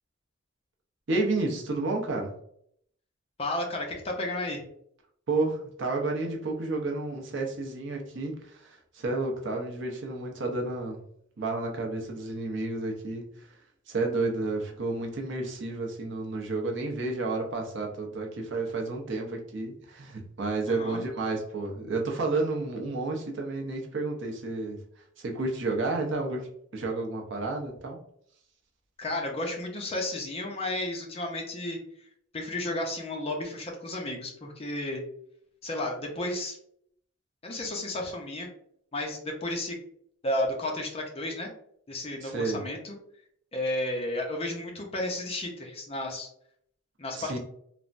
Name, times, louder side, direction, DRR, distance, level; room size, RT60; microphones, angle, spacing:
voice 1, 1.1-2.3 5.3-11.0 11.4-13.5 13.9-24.8 25.2-28.0 42.2-42.6 47.1-47.4, right 2 dB, 65° right, 1 dB, 0.6 m, -31 dB
voice 2, 3.4-4.6 20.7-21.0 29.0-31.8 32.3-35.0 35.6-36.6 37.4-38.5 38.9-39.8 40.2-41.5 41.9-43.0 43.5-46.3 47.0-47.4, left 1 dB, 30° left, 1 dB, 0.5 m, -32 dB
3.3 x 2.0 x 2.5 m, 0.68 s
head